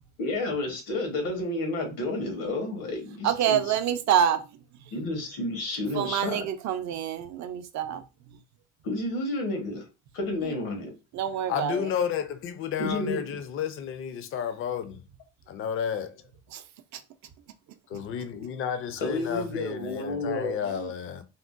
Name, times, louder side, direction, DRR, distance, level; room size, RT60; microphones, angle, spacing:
voice 1, 0.2-3.6 4.9-6.4 8.8-9.8 10.1-10.9 12.8-13.2 19.0-20.7, left 2 dB, 85° left, 1.2 m, -30 dB
voice 2, 3.2-4.4 5.9-8.0 11.1-11.9 16.5-16.6, right 9 dB, 60° right, 0.5 m, -26 dB
voice 3, 11.5-15.0 15.5-16.2 17.9-21.2, left 8 dB, 40° left, 0.4 m, -32 dB
3.6 x 2.1 x 2.5 m
cardioid pair, 150°, 32 cm